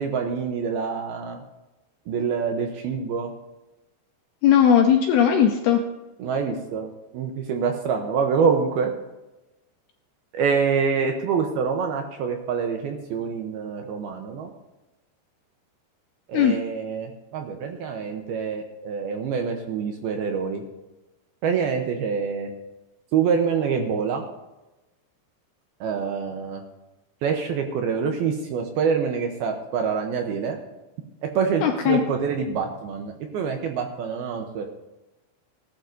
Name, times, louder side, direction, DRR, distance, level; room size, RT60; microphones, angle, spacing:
voice 1, 0.0-1.4 2.1-3.3 6.2-8.9 10.3-14.5 16.3-20.6 21.4-22.5 23.1-24.2 25.8-26.6 27.2-30.6 31.4-34.7, right 6 dB, 75° right, 3 dB, 2.4 m, -26 dB
voice 2, 4.4-5.8 16.3-16.6 31.6-32.0, left 8 dB, 80° left, 4 dB, 2.3 m, -18 dB
18.0 x 12.0 x 2.7 m, 1.0 s
omnidirectional pair, 5.3 m